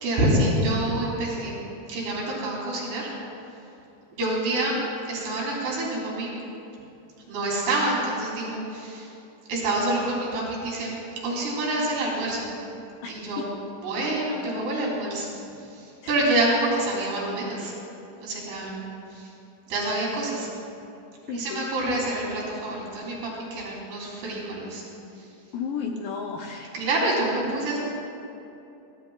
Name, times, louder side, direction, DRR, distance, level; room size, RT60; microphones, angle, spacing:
voice 1, 0.0-1.6 1.9-3.1 4.1-4.8 5.1-6.3 7.3-9.1 9.5-10.9 11.2-12.5 13.1-13.4 13.8-15.3 16.1-17.7 18.2-18.8 19.7-20.5 21.3-24.8 26.7-27.8, right 1 dB, 80° right, -4 dB, 5.4 m, -27 dB
voice 2, 13.0-13.6 16.0-16.1 21.3-21.7 25.5-26.7, left 6 dB, 75° left, 1 dB, 2.0 m, -33 dB
24.0 x 17.0 x 2.4 m, 2.8 s
omnidirectional pair, 4.7 m